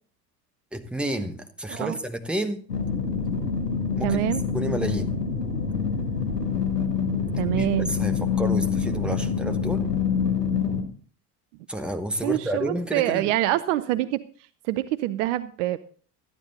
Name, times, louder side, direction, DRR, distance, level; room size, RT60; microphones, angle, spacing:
voice 1, 0.7-2.6 4.0-5.1 7.5-9.9 11.7-13.3, right 1 dB, ahead, 8 dB, 1.1 m, -30 dB
sound 1, 2.7-10.8, left 6 dB, 85° left, 1.5 m, -26 dB
voice 2, 4.0-4.4 7.3-7.9 12.2-14.2 14.6-15.8, right 15 dB, 50° right, 14 dB, 0.6 m, -25 dB
12.5 x 9.8 x 4.0 m, 0.43 s
figure-of-eight pair, 65°, 47 cm